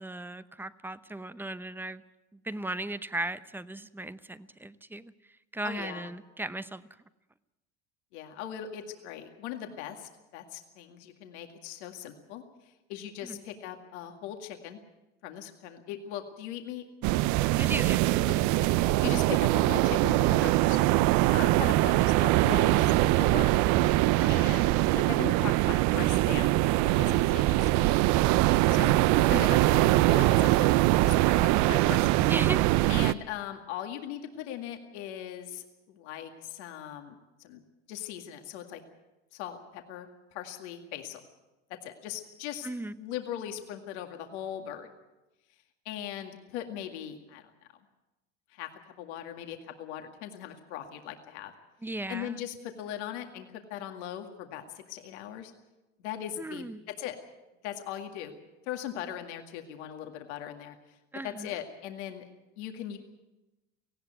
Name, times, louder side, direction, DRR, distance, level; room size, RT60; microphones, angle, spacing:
voice 1, 0.0-2.0 2.3-6.9 13.2-13.4 17.6-18.4 24.2-24.5 32.3-32.7 42.6-43.0 51.8-52.5 56.4-56.8 61.1-61.6, right 2 dB, 5° right, 14 dB, 0.8 m, -37 dB
voice 2, 5.6-6.1 8.1-12.4 12.9-14.8 15.2-16.9 18.8-20.9 21.3-22.9 23.2-23.6 24.3-26.6 26.8-28.2 28.7-32.3 32.9-37.6 37.9-38.8 39.3-41.2 41.8-42.7 43.0-44.9 45.9-47.5 48.5-48.7 49.0-51.5 52.1-55.5 56.0-56.7 57.0-57.2 57.6-58.4 58.7-60.8 61.2-62.3 62.6-63.0, left 10 dB, 80° left, 5 dB, 2.1 m, -39 dB
sound 1, 17.0-33.1, right 17 dB, 55° right, 0.6 m, -23 dB
18.5 x 16.0 x 9.2 m, 1.0 s
supercardioid pair, 100°, 34 cm